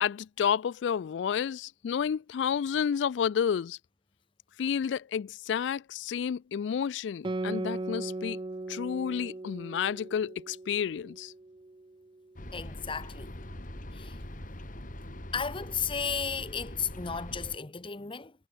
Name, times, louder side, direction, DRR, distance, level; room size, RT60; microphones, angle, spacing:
voice 1, 0.0-3.8 4.6-8.4 8.7-11.3, left 7 dB, 75° left, 0.3 m, -30 dB
Guitar, 7.2-12.2, right 2 dB, 25° right, 0.5 m, -38 dB
sound 1, 12.4-17.6, left 1 dB, 45° left, 3.4 m, -42 dB
voice 2, 12.5-13.3 13.9-14.2 15.3-18.3, left 6 dB, 30° left, 1.1 m, -34 dB
head